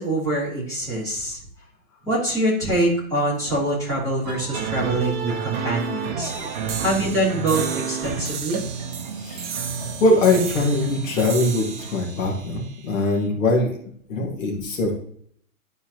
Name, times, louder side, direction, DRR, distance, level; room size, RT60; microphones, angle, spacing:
voice 1, 0.0-1.4 2.0-6.3 6.8-8.6, right 1 dB, 5° left, -11 dB, 3.2 m, -24 dB
sound 1, 4.2-12.0, right 6 dB, 30° right, 0.9 m, -31 dB
sound 2, 6.2-13.2, right 6 dB, 50° right, 1.2 m, -35 dB
voice 2, 9.2-9.6 10.0-13.8 14.1-14.9, left 2 dB, 60° left, -1 dB, 2.1 m, -22 dB
12.0 x 4.4 x 3.0 m, 0.63 s
hypercardioid pair, 165°, 43 cm